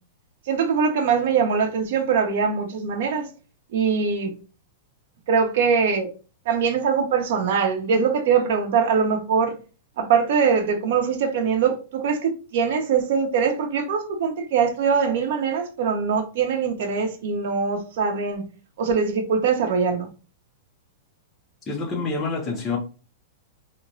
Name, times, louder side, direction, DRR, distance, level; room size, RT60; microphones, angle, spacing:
voice 1, 0.5-3.3 3.7-4.3 5.3-6.1 6.5-9.5 10.0-18.5 18.8-20.1, right 6 dB, 55° right, 0.9 m, -22 dB
voice 2, 21.7-22.8, left 4 dB, 15° left, 0.7 m, -27 dB
3.0 x 2.1 x 4.0 m
supercardioid pair, 165°, 0 cm